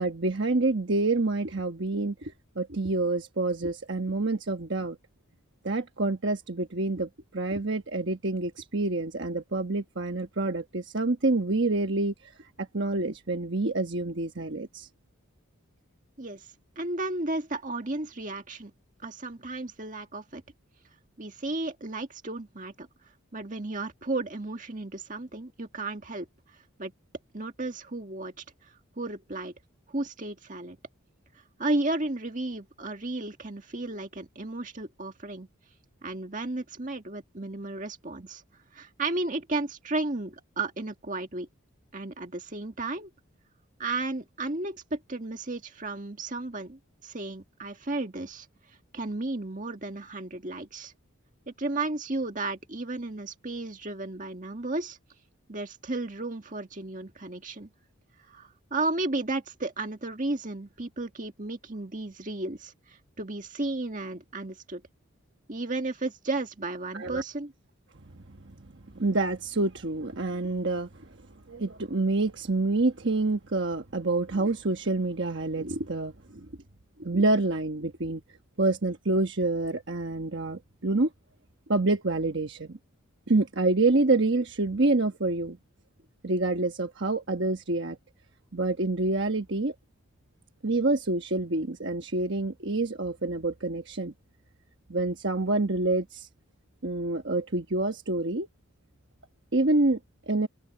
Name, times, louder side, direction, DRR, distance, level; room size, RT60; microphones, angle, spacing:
voice 1, 0.0-5.0 5.6-14.9 66.9-67.2 68.1-68.5 68.9-71.2 71.5-76.5 77.0-78.2 78.6-81.1 81.7-82.8 83.3-85.6 86.2-88.0 88.5-89.7 90.6-94.1 94.9-96.3 96.8-98.5 99.5-100.0 100.3-100.5, right 2 dB, 55° right, 1.2 m, -27 dB
voice 2, 16.8-18.7 19.0-20.4 21.2-22.9 23.3-26.3 26.8-26.9 27.3-28.3 29.0-29.5 29.9-30.8 31.6-35.5 36.0-38.4 38.7-41.5 41.9-43.1 43.8-48.5 48.9-50.9 51.6-55.0 55.5-57.7 58.3-64.8 65.5-67.5, right 2 dB, 35° right, 1.9 m, -33 dB
head